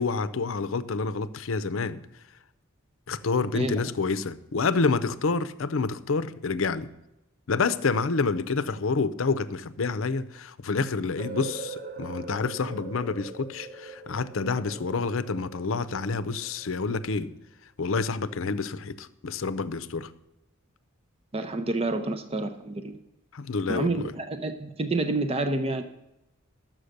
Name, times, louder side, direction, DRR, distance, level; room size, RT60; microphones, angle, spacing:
voice 1, 0.0-2.0 3.1-6.9 7.5-17.3 17.8-20.1 23.3-24.0, left 4 dB, 75° left, 0.6 m, -28 dB
sound 1, 11.2-17.0, right 4 dB, 45° right, 1.0 m, -42 dB
voice 2, 21.3-22.9 23.7-25.8, right 2 dB, 30° right, 0.6 m, -28 dB
11.5 x 7.5 x 6.5 m
head